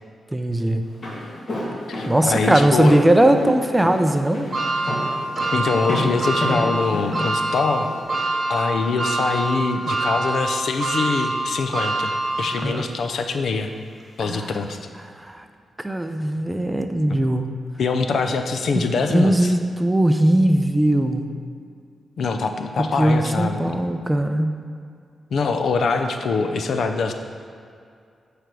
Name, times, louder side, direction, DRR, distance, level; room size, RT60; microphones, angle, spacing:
voice 1, 0.3-0.8 2.1-4.5 12.6-12.8 14.2-14.5 15.2-15.4 15.8-17.5 19.1-21.3 22.8-24.6, right 1 dB, 10° right, 7 dB, 0.5 m, -19 dB
Walk footsteps, 0.8-8.0, left 1 dB, 45° left, 1.7 m, -30 dB
voice 2, 1.9-3.0 5.5-7.9 8.5-13.7 14.2-14.8 17.8-19.5 22.2-23.8 25.3-27.1, left 4 dB, 70° left, 6 dB, 0.6 m, -24 dB
sound 1, 4.5-12.9 13.4-13.5 14.6-14.7, right 2 dB, 30° right, 1.2 m, -25 dB
9.0 x 3.4 x 6.1 m, 2.3 s
cardioid pair, 110°, 0 cm